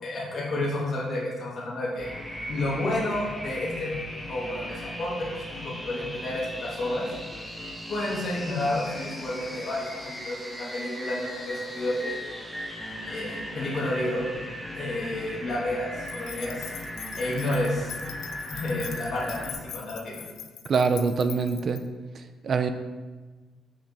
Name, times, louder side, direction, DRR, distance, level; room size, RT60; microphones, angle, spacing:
voice 1, 0.0-2.1 2.5-4.0 4.3-7.1 7.9-12.2 13.1-14.3 14.7-16.7 17.2-18.0 18.5-20.2, left 1 dB, 40° left, -6 dB, 1.6 m, -30 dB
sound 1, 2.0-19.5, equal, ahead, 1.0 m, -38 dB
sound 2, 16.0-21.8, left 9 dB, 80° left, 0.4 m, -42 dB
voice 2, 20.7-21.8 22.4-22.7, right 5 dB, 45° right, 9 dB, 0.4 m, -24 dB
6.0 x 5.1 x 4.0 m, 1.3 s
cardioid pair, 135°, 0 cm